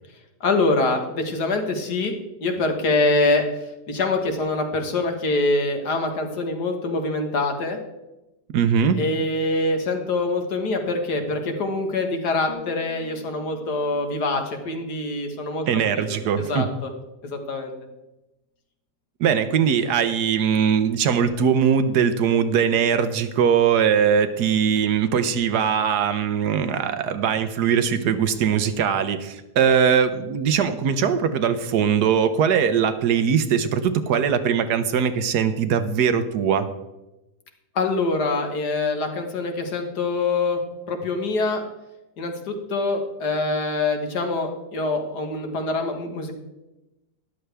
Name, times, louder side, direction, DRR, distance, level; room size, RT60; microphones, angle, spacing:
voice 1, 0.4-3.6 3.9-7.8 8.9-15.7 16.0-16.9 17.2-17.7 37.8-40.6 40.9-41.6 42.2-46.3, left 2 dB, 70° left, 4 dB, 2.0 m, -24 dB
voice 2, 8.5-9.0 15.7-16.7 19.2-36.7, right 7 dB, 75° right, 10 dB, 1.4 m, -21 dB
sound 1, 12.5-16.5 16.8-17.1, left 5 dB, 45° left, 1.5 m, -45 dB
13.5 x 11.0 x 3.4 m, 0.98 s
omnidirectional pair, 1.8 m